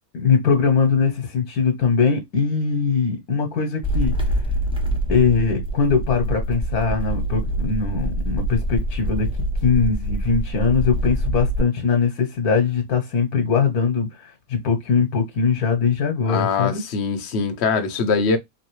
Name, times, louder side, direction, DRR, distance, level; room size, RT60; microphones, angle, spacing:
voice 1, 0.1-4.1 5.1-9.3 9.6-16.8, left 5 dB, 75° left, 1.4 m, -21 dB
sound 1, 3.8-11.6, right 1 dB, 5° right, 0.5 m, -25 dB
voice 2, 16.3-18.4, left 5 dB, 55° left, 0.9 m, -22 dB
3.8 x 3.0 x 3.0 m
omnidirectional pair, 1.6 m